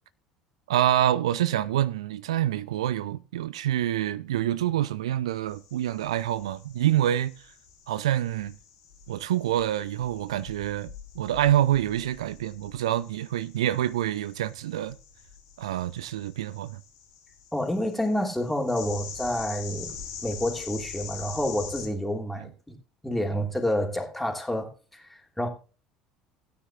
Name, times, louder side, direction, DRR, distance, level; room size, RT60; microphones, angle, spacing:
voice 1, 0.7-7.3 7.9-8.5 9.1-10.9 11.2-15.0 15.6-16.8, right 12 dB, 70° right, 0.4 m, -26 dB
sound 1, 5.5-21.9, left 7 dB, 70° left, 3.2 m, -44 dB
voice 2, 17.5-19.9 20.2-22.8 23.0-25.5, left 1 dB, 5° left, 2.9 m, -29 dB
16.5 x 9.4 x 2.4 m
figure-of-eight pair, 65°, 3 cm